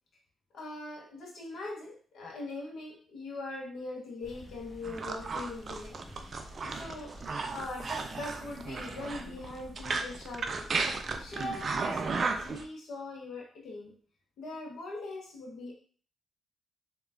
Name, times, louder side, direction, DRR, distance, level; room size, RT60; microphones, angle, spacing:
voice 1, 0.5-6.0 6.6-7.2 7.5-10.6 11.2-13.9 14.4-15.7, left 2 dB, 70° left, 0 dB, 0.7 m, -41 dB
sound 1, 4.2-12.6, equal, 35° left, 1.0 m, -50 dB
sound 2, 4.8-12.6, right 4 dB, 50° right, 0.3 m, -34 dB
3.1 x 2.2 x 2.4 m, 0.43 s
hypercardioid pair, 45°, 0 cm